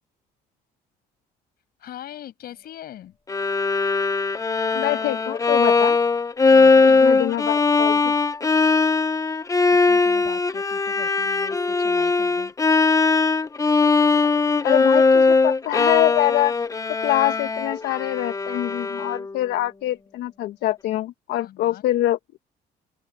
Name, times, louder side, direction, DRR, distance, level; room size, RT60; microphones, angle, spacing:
voice 1, 1.8-3.2 6.5-7.3 9.7-12.5 21.3-21.8, left 12 dB, 65° left, 6.6 m, -42 dB
Bowed string instrument, 3.3-19.4, left 4 dB, 20° left, 0.9 m, -20 dB
voice 2, 4.7-6.0 6.8-8.1 14.6-16.5 17.0-22.4, left 15 dB, 80° left, 1.3 m, -24 dB
open air
cardioid pair, 110°, 17 cm